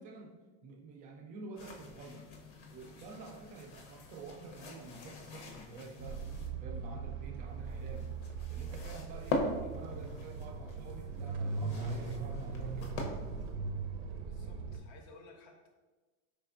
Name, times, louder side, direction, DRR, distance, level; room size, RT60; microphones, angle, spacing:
voice 1, 0.0-2.3 2.7-6.3 6.6-8.1 8.5-13.1, right 3 dB, 25° right, 1 dB, 0.3 m, -49 dB
sound 1, 1.6-6.5 7.5-13.5, left 2 dB, 90° left, 0.8 m, -42 dB
sound 2, 6.0-14.8, right 4 dB, 80° right, 0.6 m, -39 dB
voice 2, 14.2-15.7, left 3 dB, 50° left, 3 dB, 0.6 m, -56 dB
4.7 x 3.3 x 2.5 m, 1.3 s
supercardioid pair, 160°, 34 cm